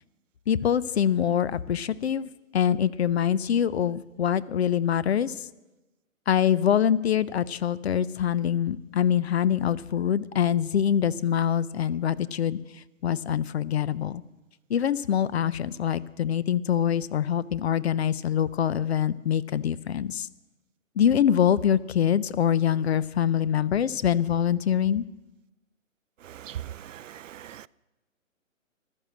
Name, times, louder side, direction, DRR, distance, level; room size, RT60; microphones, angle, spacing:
voice 1, 0.5-5.3 6.3-12.6 13.0-14.2 14.7-20.3 21.0-25.0, left 9 dB, 50° left, 0.6 m, -24 dB
voice 2, 26.2-27.7, right 11 dB, 65° right, 0.5 m, -40 dB
14.5 x 11.5 x 7.6 m
hypercardioid pair, 150°, 40 cm